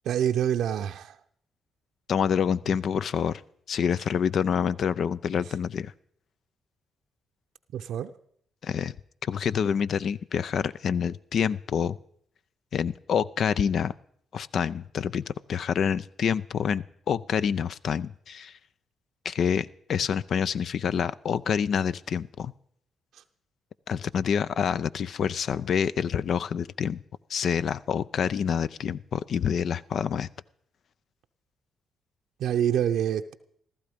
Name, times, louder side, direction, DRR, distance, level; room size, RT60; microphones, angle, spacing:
voice 1, 0.0-1.2 7.7-8.1 32.4-33.3, right 10 dB, 75° right, 0.6 m, -26 dB
voice 2, 2.1-3.4 3.7-5.9 8.6-8.9 9.2-12.0 12.7-13.9 14.3-18.5 19.2-22.5 23.9-27.0 27.3-30.3, left 7 dB, 65° left, 0.5 m, -27 dB
15.0 x 13.5 x 5.1 m
supercardioid pair, 50°, 0 cm